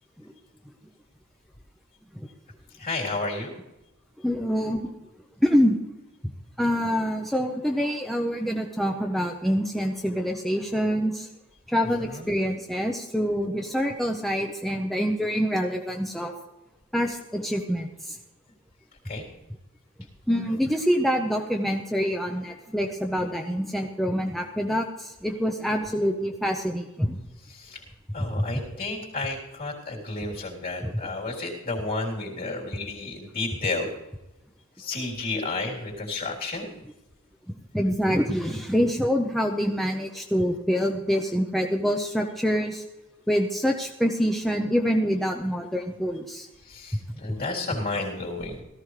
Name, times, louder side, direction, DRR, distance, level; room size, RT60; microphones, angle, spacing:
voice 1, 2.8-3.5 12.0-12.3 19.0-19.2 27.5-27.8 28.1-33.9 34.8-36.7 46.6-48.6, left 3 dB, 45° left, -2 dB, 3.6 m, -31 dB
voice 2, 4.2-4.8 5.4-5.8 6.6-11.3 11.7-16.3 16.9-18.2 20.3-27.2 28.5-28.7 30.8-30.9 37.7-42.8 43.3-46.5, equal, ahead, 2 dB, 0.7 m, -26 dB
17.5 x 14.0 x 3.3 m, 1.0 s
head